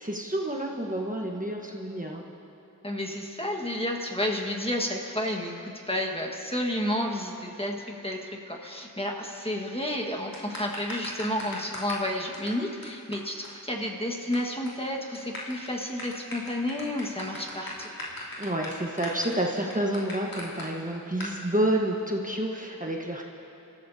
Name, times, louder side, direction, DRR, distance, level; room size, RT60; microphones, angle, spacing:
voice 1, 0.0-2.2 18.4-23.3, right 1 dB, 25° right, 0 dB, 1.3 m, -29 dB
voice 2, 2.8-17.9, left 1 dB, 15° left, 0 dB, 1.6 m, -31 dB
sound 1, 10.3-12.1 12.3-12.5 12.8-12.9 13.1-13.2 13.4-13.5 13.8-14.4 14.7-14.8 15.1-20.6 21.2-21.3, left 1 dB, 80° left, 3.4 m, -38 dB
28.0 x 14.0 x 2.8 m, 3.0 s
wide cardioid pair, 50°, 34 cm